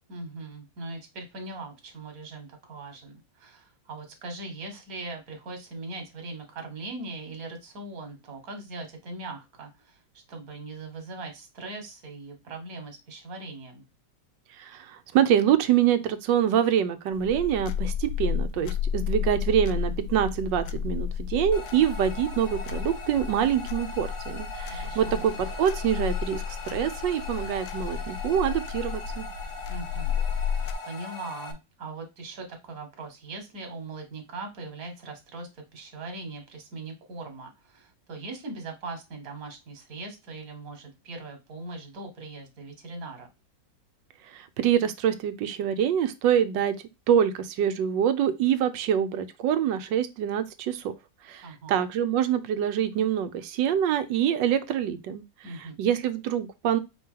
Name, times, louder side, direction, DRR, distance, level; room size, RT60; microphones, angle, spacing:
voice 1, 0.1-10.0 10.3-13.8 24.7-25.3 29.7-30.2 30.9-43.3 51.4-51.8 55.4-55.8, right 3 dB, 55° right, 1.7 m, -40 dB
voice 2, 14.6-29.3 44.3-46.8 47.1-50.9 51.3-55.2 55.5-56.8, right 9 dB, 80° right, 1.3 m, -25 dB
sound 1, 17.1-30.7, left 7 dB, 70° left, 1.0 m, -32 dB
sound 2, 21.5-31.5, left 3 dB, 50° left, 1.2 m, -40 dB
5.0 x 2.8 x 3.6 m
omnidirectional pair, 1.9 m